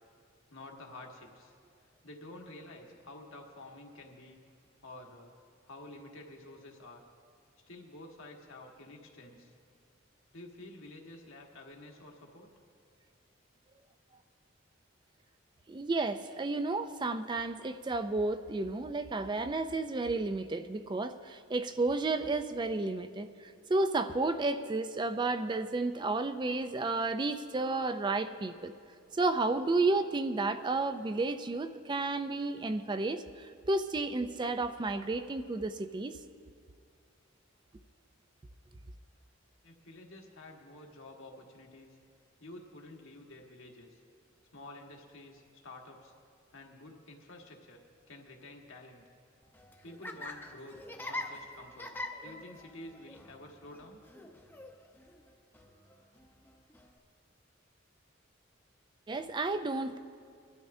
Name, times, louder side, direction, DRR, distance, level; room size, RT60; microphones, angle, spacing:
voice 1, 0.5-1.5 2.0-4.4 4.8-5.3 5.6-7.0 7.7-9.5 10.3-12.5 39.6-42.0 42.4-44.0 44.5-46.1 46.5-47.8 48.1-49.0 49.8-51.9 52.2-54.0, left 2 dB, 80° left, 0 dB, 1.6 m, -50 dB
voice 2, 15.7-28.7 29.1-36.2 59.1-60.0, right 3 dB, 20° right, 9 dB, 0.4 m, -32 dB
Laughter, 49.4-57.0, left 1 dB, 10° left, 0.7 m, -45 dB
22.0 x 12.5 x 2.7 m, 2.2 s
head